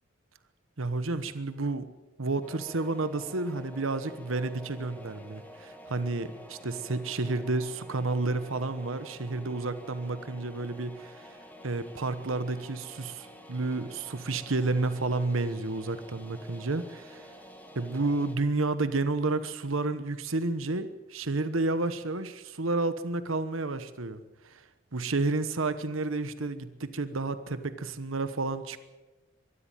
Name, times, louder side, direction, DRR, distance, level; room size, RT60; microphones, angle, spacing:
voice 1, 0.8-1.9 2.2-11.4 11.6-17.3 17.7-24.7 24.9-28.8, right 3 dB, 80° right, 12 dB, 1.1 m, -31 dB
sound 1, 2.4-18.4, equal, 10° left, 2.3 m, -49 dB
23.5 x 13.0 x 9.1 m, 1.2 s
head